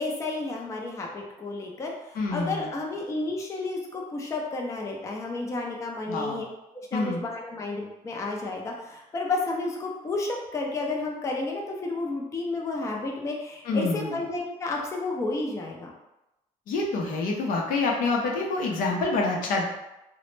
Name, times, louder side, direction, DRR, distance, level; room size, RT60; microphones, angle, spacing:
voice 1, 0.0-6.4 6.7-15.9, left 3 dB, 20° left, 0 dB, 0.4 m, -31 dB
voice 2, 2.1-2.7 6.1-6.4 6.9-7.2 13.6-14.2 16.7-19.6, left 3 dB, 75° left, 0 dB, 0.6 m, -27 dB
2.0 x 2.0 x 3.0 m, 0.93 s
cardioid pair, 115°, 14 cm